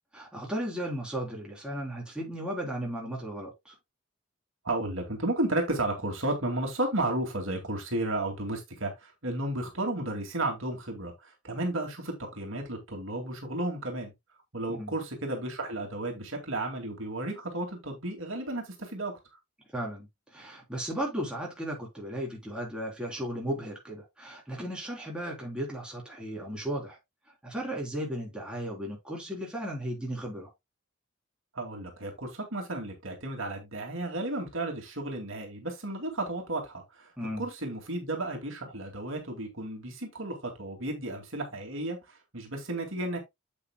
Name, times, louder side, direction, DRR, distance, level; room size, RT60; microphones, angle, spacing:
voice 1, 0.1-3.7 14.7-14.9 19.7-27.0 27.4-30.5 37.2-37.5, right 1 dB, 5° right, 3.7 m, -35 dB
voice 2, 4.6-14.1 14.5-19.1 31.5-37.1 37.4-43.2, right 2 dB, 60° right, 2.4 m, -33 dB
8.3 x 8.1 x 2.3 m
head